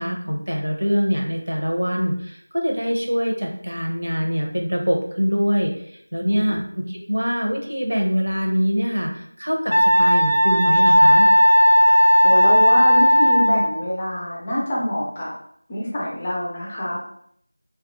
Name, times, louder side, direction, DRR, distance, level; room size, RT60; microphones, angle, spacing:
voice 1, 0.0-11.3, equal, 70° right, 1 dB, 0.7 m, -24 dB
Wind instrument woodwind instrument, 9.7-13.8, equal, 75° left, 0.5 m, -15 dB
voice 2, 12.2-15.3 15.7-17.1, equal, 20° left, -5 dB, 0.4 m, -25 dB
2.2 x 2.1 x 2.9 m, 0.66 s
figure-of-eight pair, 175°, 0 cm